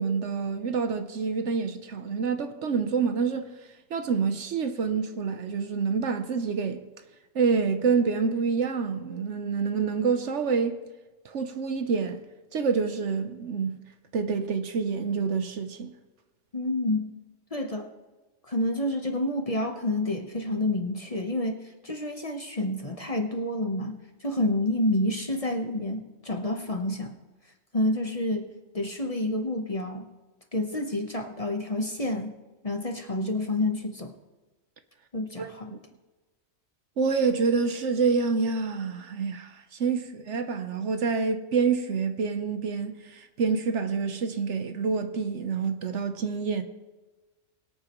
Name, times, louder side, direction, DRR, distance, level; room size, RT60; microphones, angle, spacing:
voice 1, 0.0-3.5 3.9-6.8 7.3-10.8 11.2-12.2 12.5-13.8 14.1-15.9 35.4-35.8 37.0-46.6, right 5 dB, 65° right, 1.1 m, -27 dB
voice 2, 16.5-17.1 17.5-17.9 18.4-27.1 27.7-30.1 30.5-32.3 32.6-34.1 35.1-35.7, left 1 dB, 30° left, 1.0 m, -29 dB
23.0 x 8.7 x 3.1 m
omnidirectional pair, 1.4 m